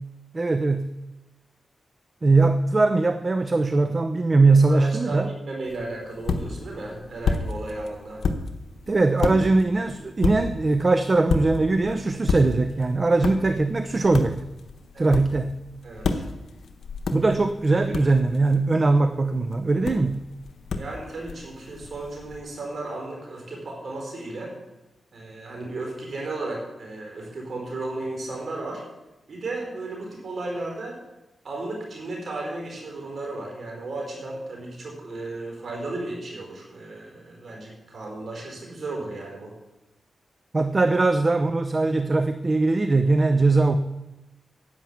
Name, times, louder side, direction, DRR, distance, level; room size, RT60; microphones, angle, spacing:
voice 1, 0.3-0.9 2.2-5.3 8.9-14.4 15.0-15.6 17.1-20.2 40.5-43.8, right 3 dB, 40° right, 10 dB, 0.7 m, -21 dB
voice 2, 4.7-8.2 14.9-15.1 15.8-16.2 20.8-24.5 25.1-28.8 29.3-31.0 31.4-39.5, right 2 dB, 65° right, 0 dB, 4.8 m, -34 dB
sound 1, 5.6-22.4, left 4 dB, 80° left, 1.1 m, -32 dB
10.5 x 9.1 x 7.3 m, 0.99 s
cardioid pair, 50°, 0 cm